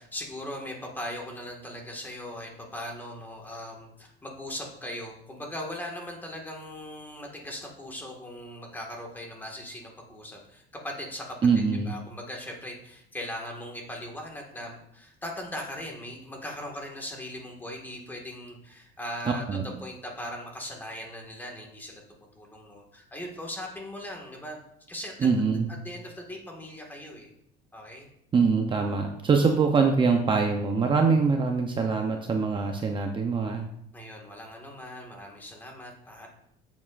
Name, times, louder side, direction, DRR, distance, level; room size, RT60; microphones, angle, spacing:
voice 1, 0.0-11.4 11.8-24.6 24.9-25.3 25.8-27.3 27.7-28.1 33.9-36.3, left 1 dB, 10° left, 0 dB, 1.7 m, -39 dB
voice 2, 11.4-11.9 19.5-19.7 25.2-25.7 28.3-33.7, right 5 dB, 25° right, 3 dB, 0.7 m, -24 dB
10.5 x 7.4 x 2.5 m, 0.73 s
cardioid pair, 145°, 19 cm